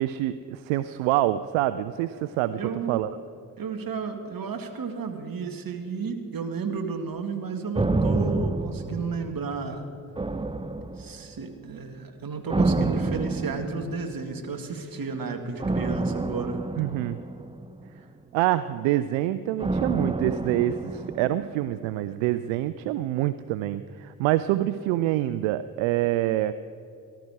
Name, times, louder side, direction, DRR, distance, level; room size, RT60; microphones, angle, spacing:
voice 1, 0.0-3.2 16.8-17.2 18.3-26.5, right 14 dB, 75° right, 13 dB, 0.5 m, -26 dB
voice 2, 2.5-3.0 3.6-9.8 11.0-16.6, right 5 dB, 45° right, 6 dB, 1.9 m, -32 dB
sound 1, 7.7-9.7 10.2-11.4 12.5-14.2 15.6-18.0 19.6-21.8 22.1-22.2, right 2 dB, 10° right, 0.8 m, -28 dB
19.0 x 12.0 x 4.9 m, 2.6 s
hypercardioid pair, 40°, 48 cm